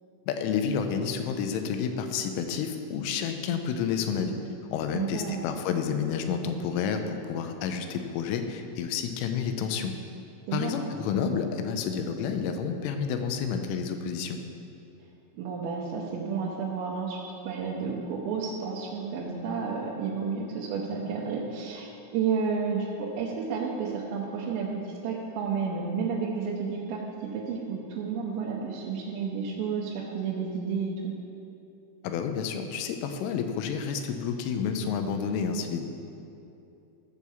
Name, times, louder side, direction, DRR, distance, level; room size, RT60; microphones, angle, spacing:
voice 1, 0.3-4.4 4.7-9.9 10.5-14.4 32.0-35.9, left 6 dB, 80° left, 6 dB, 3.2 m, -30 dB
voice 2, 4.9-5.5 10.5-10.9 15.3-31.1, right 5 dB, 90° right, -5 dB, 3.6 m, -31 dB
14.0 x 4.7 x 7.0 m, 2.8 s
omnidirectional pair, 5.8 m